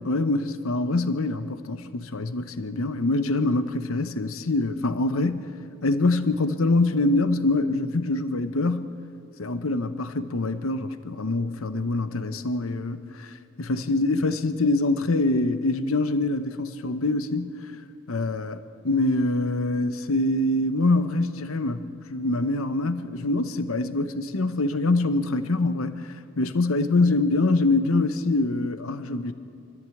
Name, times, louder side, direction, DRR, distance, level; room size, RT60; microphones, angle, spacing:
voice 1, 0.1-5.5 5.8-8.9 9.4-17.5 18.1-29.3, left 2 dB, 80° left, 11 dB, 0.9 m, -25 dB
24.0 x 14.5 x 8.4 m, 2.3 s
head